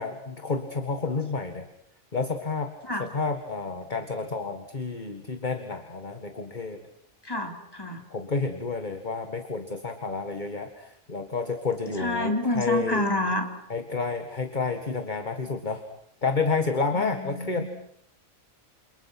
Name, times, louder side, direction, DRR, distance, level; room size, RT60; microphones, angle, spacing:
voice 1, 0.0-1.7 2.1-2.7 3.0-6.8 8.1-13.1 13.7-15.8 16.2-17.6, left 4 dB, 35° left, 7 dB, 2.0 m, -30 dB
voice 2, 7.2-8.0 12.0-13.5 17.0-17.6, left 1 dB, 15° left, 4 dB, 3.5 m, -28 dB
28.5 x 28.5 x 6.1 m, 0.71 s
omnidirectional pair, 1.4 m